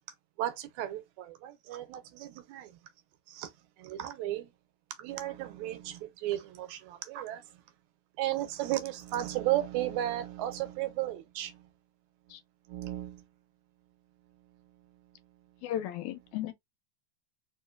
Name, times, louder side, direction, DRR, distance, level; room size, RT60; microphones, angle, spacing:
voice 1, 0.4-2.8 3.3-3.5 3.8-4.5 5.0-7.6 8.2-11.7 12.3-12.4 12.7-13.3 14.2-15.7, right 14 dB, 80° right, 2.0 m, -35 dB
voice 2, 15.6-16.5, left 12 dB, 85° left, 2.0 m, -35 dB
4.3 x 2.9 x 2.3 m
omnidirectional pair, 3.4 m